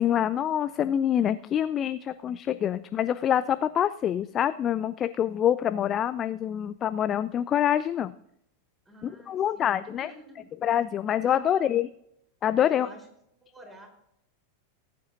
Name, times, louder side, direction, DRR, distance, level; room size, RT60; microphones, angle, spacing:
voice 1, 0.0-8.1 9.3-10.1 10.6-11.9 12.4-12.9, left 10 dB, 30° left, 13 dB, 0.3 m, -26 dB
voice 2, 2.8-3.8 8.9-10.7 11.2-11.7 12.6-13.1 13.5-13.9, right 1 dB, 15° right, 1 dB, 4.0 m, -51 dB
19.0 x 9.3 x 2.6 m, 0.78 s
figure-of-eight pair, 90°, 0 cm